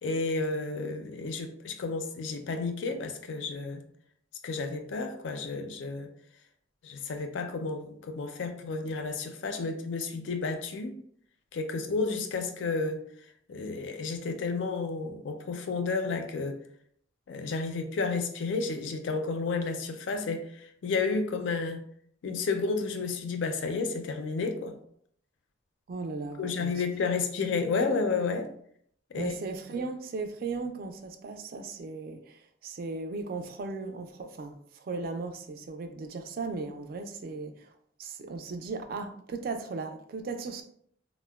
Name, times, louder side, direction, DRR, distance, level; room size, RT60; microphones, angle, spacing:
voice 1, 0.0-3.8 4.4-6.1 6.8-11.0 11.5-13.0 13.5-16.6 17.3-20.5 20.8-21.8 22.2-24.8 26.4-28.5 29.1-29.3, left 4 dB, 85° left, 0.4 m, -31 dB
voice 2, 25.9-26.8 29.2-37.7 38.0-40.6, right 3 dB, 50° right, 0.3 m, -37 dB
3.6 x 2.0 x 2.2 m
head